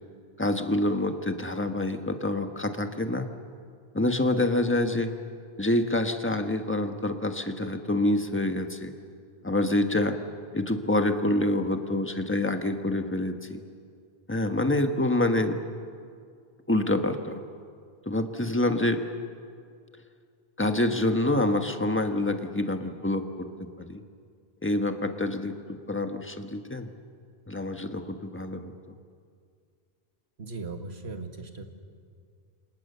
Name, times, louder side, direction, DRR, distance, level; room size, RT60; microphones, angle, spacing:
voice 1, 0.4-3.3 3.9-5.1 5.6-8.9 9.4-10.2 10.5-13.6 14.3-15.6 16.7-17.4 18.1-19.0 20.6-24.0 24.6-26.9 27.5-28.7, left 1 dB, 10° left, 6 dB, 1.4 m, -27 dB
voice 2, 30.4-31.7, right 3 dB, 80° right, 5 dB, 2.2 m, -38 dB
30.0 x 26.0 x 6.9 m, 2.2 s
omnidirectional pair, 1.1 m